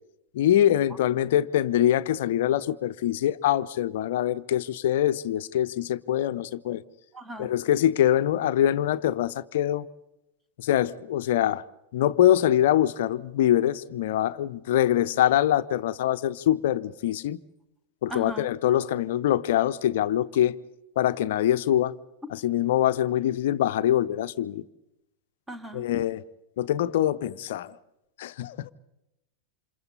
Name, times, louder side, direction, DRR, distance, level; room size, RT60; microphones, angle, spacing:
voice 1, 0.3-6.8 7.4-9.9 10.6-11.6 11.9-17.4 18.0-20.5 21.0-21.9 22.3-24.6 25.7-26.2 26.6-27.7 28.2-28.7, left 11 dB, 55° left, 0.7 m, -24 dB
voice 2, 7.1-7.5 18.1-18.5 25.5-25.8, equal, 10° right, 1.8 m, -37 dB
28.5 x 27.0 x 4.2 m
figure-of-eight pair, 90°, 0 cm